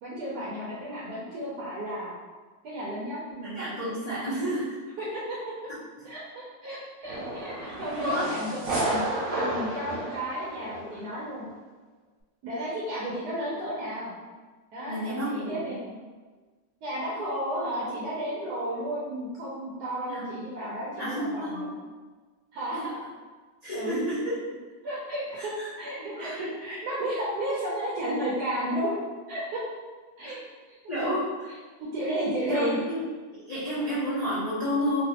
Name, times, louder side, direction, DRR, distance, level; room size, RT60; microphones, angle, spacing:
voice 1, 0.0-2.1 2.6-3.2 5.0-5.4 6.0-11.5 12.4-14.1 14.7-15.8 16.8-21.7 22.5-22.8 23.7-24.0 24.8-29.0 29.3-29.6 30.2-30.4 31.0-31.1 31.9-32.8, equal, 70° right, -7 dB, 1.1 m, -33 dB
voice 2, 3.3-4.8 8.0-8.3 14.9-15.8 20.1-20.3 21.0-21.8 22.7-22.9 23.6-24.3 25.4-25.7 26.1-26.4 30.2-30.4 30.9-31.3 32.5-33.1 33.3-35.0, equal, 55° left, -12 dB, 0.4 m, -30 dB
sound 1, 7.0-11.1, right 2 dB, 85° right, 1.6 m, -32 dB
3.1 x 2.4 x 2.8 m, 1.4 s
omnidirectional pair, 1.9 m